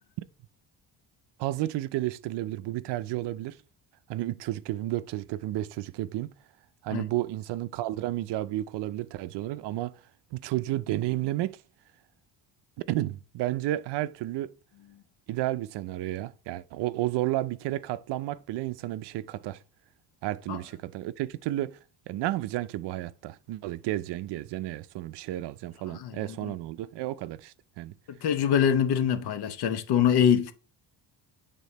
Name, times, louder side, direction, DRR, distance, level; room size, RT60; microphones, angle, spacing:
voice 1, 1.4-3.6 4.1-6.3 6.8-9.9 10.3-11.6 12.9-14.5 15.3-19.6 20.2-21.8 22.1-27.9, right 15 dB, 70° right, 0.5 m, -32 dB
voice 2, 25.9-26.5 28.1-30.5, left 8 dB, 60° left, 0.9 m, -24 dB
8.4 x 3.7 x 4.1 m
cardioid pair, 165°, 43 cm